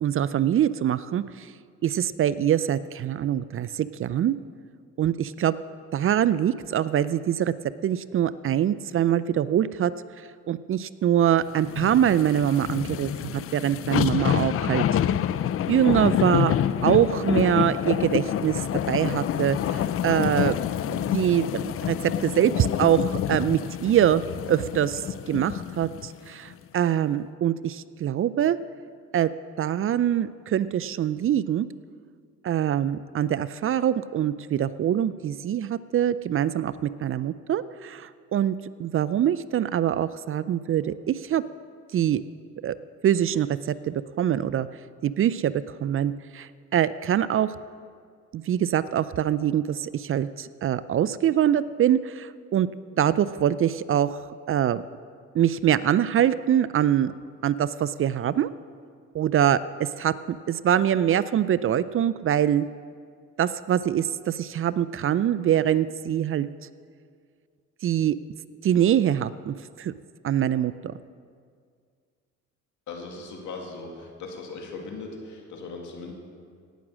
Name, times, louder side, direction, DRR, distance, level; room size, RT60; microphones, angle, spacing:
voice 1, 0.0-1.5 1.8-4.4 5.0-5.5 5.9-7.5 7.8-9.9 10.5-14.8 15.7-16.6 16.8-18.6 18.9-20.6 20.9-24.2 24.5-28.6 29.1-29.3 29.6-31.7 32.4-41.4 41.9-42.2 42.6-42.8 43.0-44.7 45.0-45.5 45.8-47.5 48.3-52.7 53.0-54.2 54.5-54.8 55.3-57.1 57.4-58.5 59.1-62.7 63.4-66.5 67.8-68.2 68.6-69.9 70.2-70.9, right 10 dB, 45° right, 16 dB, 0.4 m, -24 dB
sound 1, 11.6-26.1 26.5-26.6, left 10 dB, 50° left, 0.4 m, -27 dB
voice 2, 72.9-76.1, left 3 dB, 75° left, 1 dB, 2.2 m, -38 dB
17.5 x 6.1 x 6.3 m, 2.1 s
cardioid pair, 90°, 30 cm